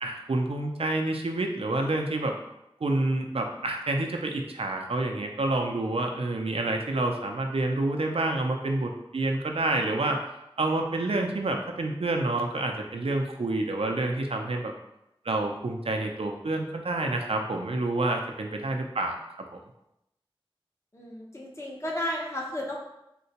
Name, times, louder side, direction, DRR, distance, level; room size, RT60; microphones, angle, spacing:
voice 1, 0.0-2.4 2.8-10.2 10.6-14.7 15.3-19.2, right 2 dB, 80° right, 3 dB, 0.4 m, -28 dB
voice 2, 20.9-22.8, left 1 dB, 30° left, -3 dB, 0.7 m, -33 dB
3.7 x 2.1 x 2.8 m, 0.86 s
wide cardioid pair, 45°, 10 cm